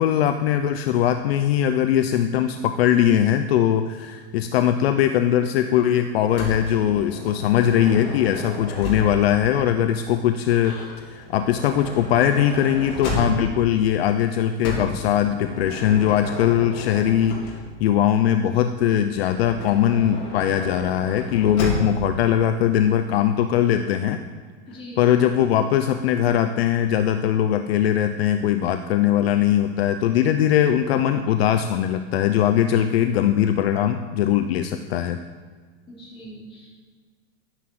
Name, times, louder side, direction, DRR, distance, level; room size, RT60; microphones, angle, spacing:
voice 1, 0.0-10.8 11.1-24.2 25.0-35.2, left 10 dB, 55° left, 9 dB, 0.7 m, -20 dB
Motor vehicle (road) / Sliding door, 6.4-9.4 10.4-13.7 14.6-17.9 19.1-22.1, left 1 dB, 40° left, 4.1 m, -32 dB
voice 2, 24.7-25.1 35.9-36.8, equal, 15° left, -3 dB, 3.0 m, -41 dB
11.5 x 10.0 x 7.7 m, 1.5 s
supercardioid pair, 170°, 37 cm